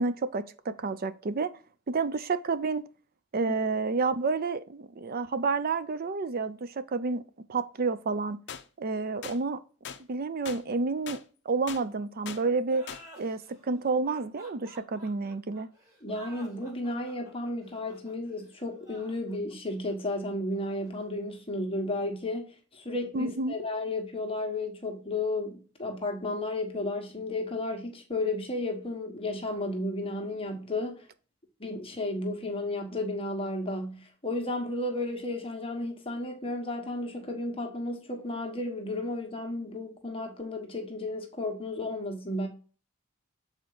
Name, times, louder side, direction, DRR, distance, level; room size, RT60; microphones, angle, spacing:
voice 1, 0.0-1.5 1.9-2.9 3.3-7.2 7.5-8.4 8.8-9.6 10.1-11.2 11.5-12.9 13.2-15.7 23.1-23.5, right 4 dB, 45° right, 0.5 m, -29 dB
sound 1, 8.5-8.6 9.2-9.4 9.9-10.0 10.5-10.6 11.1-11.2 11.7-11.8 12.3-12.4 12.9-13.0, left 7 dB, 60° left, 0.6 m, -39 dB
sound 2, 12.6-21.9, right 1 dB, 20° right, 2.1 m, -53 dB
voice 2, 16.0-31.0 31.6-42.5, left 2 dB, 25° left, 1.3 m, -33 dB
6.9 x 4.3 x 3.9 m
head